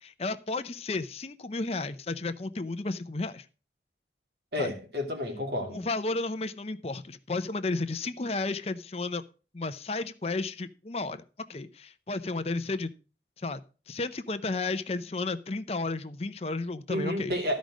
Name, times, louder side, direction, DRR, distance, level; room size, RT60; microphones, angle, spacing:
voice 1, 0.0-3.5 4.6-4.7 5.7-9.2 9.5-11.2 11.5-12.9 13.4-13.6 13.9-17.3, left 3 dB, 35° left, 0.6 m, -33 dB
voice 2, 4.5-5.8 16.9-17.6, left 1 dB, 65° right, 2.7 m, -31 dB
13.5 x 5.2 x 6.2 m
head